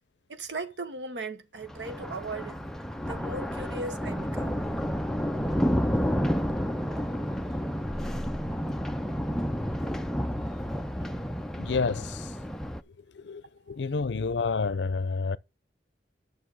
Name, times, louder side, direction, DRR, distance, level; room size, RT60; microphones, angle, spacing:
voice 1, 0.3-2.6 3.1-4.6, right 3 dB, 80° right, 1.0 m, -37 dB
Thunder, 1.6-12.8, equal, 5° left, 0.5 m, -30 dB
voice 2, 11.6-12.3 13.1-15.4, left 4 dB, 80° left, 0.6 m, -29 dB
9.1 x 6.7 x 4.7 m
head